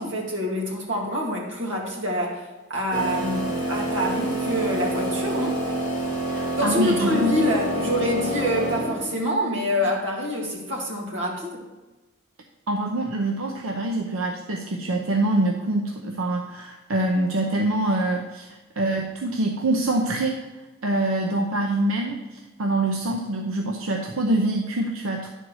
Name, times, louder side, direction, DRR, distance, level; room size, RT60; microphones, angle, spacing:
voice 1, 0.0-2.4 2.7-5.6 6.6-11.6, equal, 60° right, -2 dB, 2.2 m, -26 dB
sound 1, 2.9-9.2, right 1 dB, 20° right, 2.2 m, -27 dB
voice 2, 6.3-7.4 12.7-18.5 18.8-20.4 20.8-25.3, right 1 dB, 85° right, 1 dB, 0.8 m, -25 dB
10.0 x 4.5 x 6.3 m, 1.1 s
head